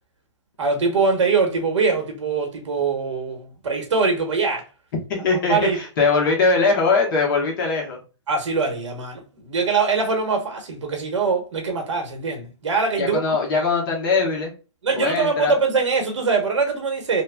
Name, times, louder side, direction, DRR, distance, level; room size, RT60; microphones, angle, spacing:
voice 1, 0.6-4.6 5.5-5.8 8.3-13.2 14.8-17.2, right 4 dB, 80° right, 1.1 m, -22 dB
voice 2, 5.1-8.0 13.0-14.5 14.9-15.6, left 4 dB, 40° left, 1.1 m, -21 dB
3.0 x 2.2 x 2.2 m
hypercardioid pair, 155°, 15 cm